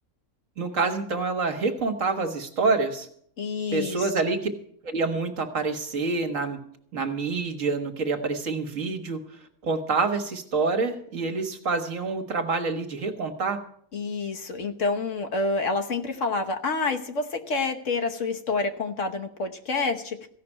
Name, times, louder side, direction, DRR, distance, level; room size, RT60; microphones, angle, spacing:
voice 1, 0.6-3.1 3.7-4.5 4.8-6.6 6.9-9.2 9.6-13.6, right 4 dB, 60° right, 6 dB, 1.9 m, -27 dB
voice 2, 3.4-4.1 13.9-20.3, left 3 dB, 60° left, 5 dB, 1.4 m, -28 dB
15.5 x 5.9 x 9.9 m, 0.64 s
omnidirectional pair, 1.5 m